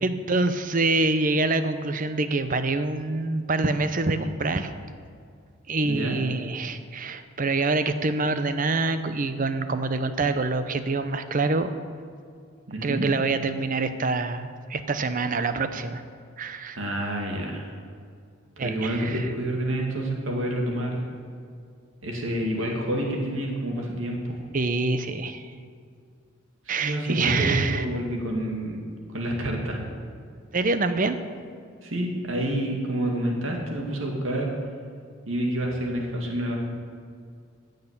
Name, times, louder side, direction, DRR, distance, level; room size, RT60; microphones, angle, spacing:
voice 1, 0.0-4.7 5.7-11.7 12.8-16.0 16.4-16.8 18.6-19.3 24.5-25.5 26.7-27.9 30.5-31.2, right 3 dB, 40° right, 10 dB, 0.7 m, -26 dB
voice 2, 5.8-6.2 12.7-13.1 16.8-17.7 18.6-21.1 22.0-24.4 26.7-28.8 29.1-29.8 31.8-34.5 35.3-36.6, right 1 dB, 75° right, 0 dB, 2.3 m, -28 dB
15.5 x 6.6 x 8.3 m, 2.2 s
head